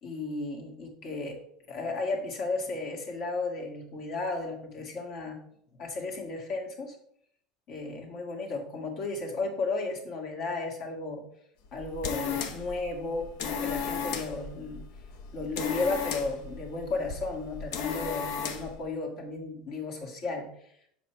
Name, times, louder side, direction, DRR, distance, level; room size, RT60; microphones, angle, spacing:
voice 1, 0.0-1.4 1.7-5.4 5.8-7.0 7.7-11.2 11.7-14.8 15.3-20.5, left 3 dB, 55° left, 1 dB, 2.0 m, -34 dB
sound 1, 11.6-18.8, left 6 dB, 70° left, 0.9 m, -35 dB
6.7 x 4.7 x 4.6 m, 0.68 s
supercardioid pair, 125°, 0 cm